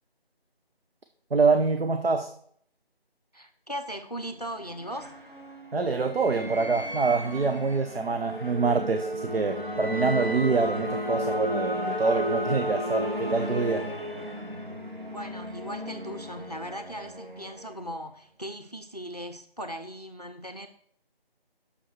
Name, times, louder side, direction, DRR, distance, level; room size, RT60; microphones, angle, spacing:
voice 1, 1.3-2.3 5.7-13.9, right 4 dB, 70° right, 8 dB, 0.7 m, -25 dB
voice 2, 3.3-5.1 15.1-20.7, equal, 40° left, 8 dB, 0.5 m, -38 dB
sound 1, 4.3-18.0, equal, 50° right, 1.8 m, -33 dB
6.4 x 5.6 x 5.7 m, 0.64 s
figure-of-eight pair, 175°, 31 cm